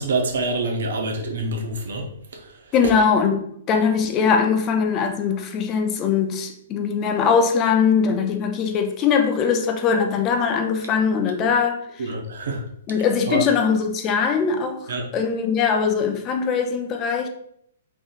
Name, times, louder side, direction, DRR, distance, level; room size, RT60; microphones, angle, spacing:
voice 1, 0.0-2.1 12.0-12.6 13.3-13.4 14.9-15.1, right 2 dB, 70° right, 2 dB, 0.7 m, -25 dB
voice 2, 2.7-12.1 12.9-17.3, left 6 dB, 30° left, 5 dB, 0.5 m, -21 dB
3.5 x 2.6 x 2.4 m, 0.69 s
figure-of-eight pair, 115°, 0 cm